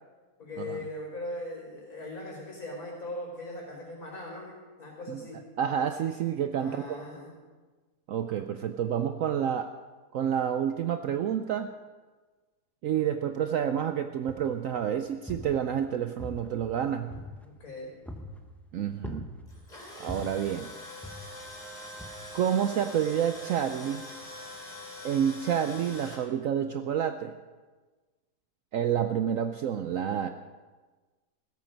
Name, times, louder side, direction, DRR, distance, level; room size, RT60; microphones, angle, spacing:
voice 1, 0.4-5.4 6.5-7.4 17.4-17.9, left 1 dB, 60° left, -3 dB, 4.7 m, -40 dB
voice 2, 5.6-7.0 8.1-9.7 10.1-11.7 12.8-17.1 18.7-19.3 20.0-20.7 22.3-24.1 25.0-27.3 28.7-30.3, right 9 dB, 65° right, 8 dB, 0.9 m, -29 dB
sound 1, 14.3-14.7 15.1-15.9 16.2-17.7 18.1-18.5 19.0-19.7 20.1-20.5 21.0-21.6 22.0-22.1, equal, ahead, 0.7 m, -42 dB
Tools, 19.5-26.2, left 1 dB, 25° left, 3.2 m, -44 dB
15.5 x 14.0 x 5.2 m, 1.3 s
omnidirectional pair, 1.7 m